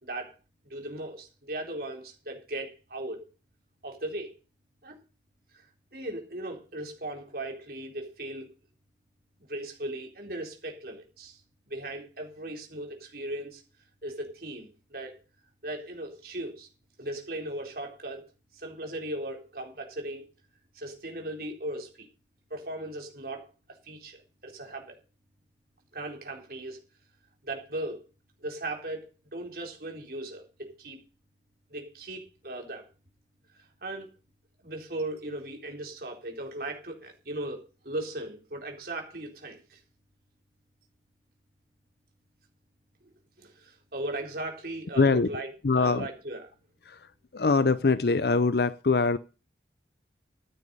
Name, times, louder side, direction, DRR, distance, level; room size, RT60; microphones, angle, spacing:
voice 1, 0.0-0.3 0.6-3.2 3.8-4.3 4.8-5.0 5.9-8.5 9.5-11.4 11.7-13.6 14.0-15.2 15.6-16.7 17.0-18.2 18.5-20.2 20.7-22.1 22.5-23.4 23.8-25.0 25.9-26.8 27.4-28.0 28.4-29.0 29.3-31.0 31.7-32.9 33.5-34.1 34.6-39.8 43.4-45.5 45.8-46.4, right 1 dB, 55° right, 4.0 m, -37 dB
voice 2, 45.0-46.1 46.8-49.2, left 4 dB, 55° left, 0.5 m, -24 dB
13.5 x 9.8 x 5.4 m
head